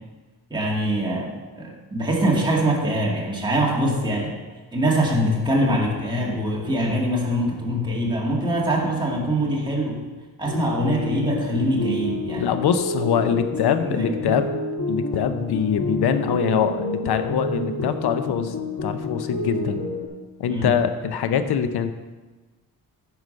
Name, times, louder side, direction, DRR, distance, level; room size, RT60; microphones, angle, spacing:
voice 1, 0.5-4.4 4.7-10.0 10.4-12.6 13.5-14.4 20.5-20.7, right 1 dB, 10° right, -3 dB, 2.0 m, -23 dB
sound 1, 10.4-20.1, left 2 dB, 50° left, 1.3 m, -29 dB
voice 2, 12.4-14.5 14.9-19.8 20.4-21.9, left 8 dB, 85° left, 9 dB, 0.7 m, -23 dB
9.3 x 4.9 x 6.4 m, 1.3 s
wide cardioid pair, 120°, 38 cm